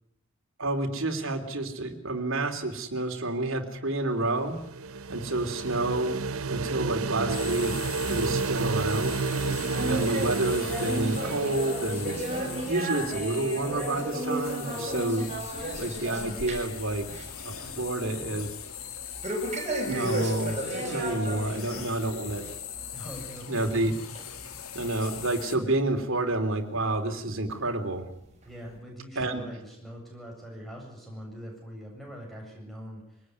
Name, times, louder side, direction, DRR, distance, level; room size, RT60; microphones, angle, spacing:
voice 1, 0.6-4.6 5.1-7.7 8.1-9.2 9.9-12.2 12.6-15.3 15.7-17.1 17.4-18.5 19.9-20.6 20.9-22.5 23.5-23.9 24.7-28.0 29.1-29.4, right 2 dB, 65° right, 4 dB, 3.4 m, -29 dB
sound 1, 4.2-13.0, right 4 dB, 85° right, 0.9 m, -31 dB
sound 2, 7.3-25.6, left 8 dB, 85° left, 2.6 m, -41 dB
sound 3, 9.2-16.8 17.1-17.4 17.8-17.9 19.2-21.9 22.3-22.5 23.2-23.3 24.2-24.3 25.0-25.1, right 1 dB, 35° right, 7.0 m, -33 dB
voice 2, 17.6-18.5 20.8-21.7 22.9-23.7 28.4-33.2, equal, ahead, 0 dB, 7.8 m, -43 dB
23.5 x 19.5 x 9.6 m, 0.75 s
head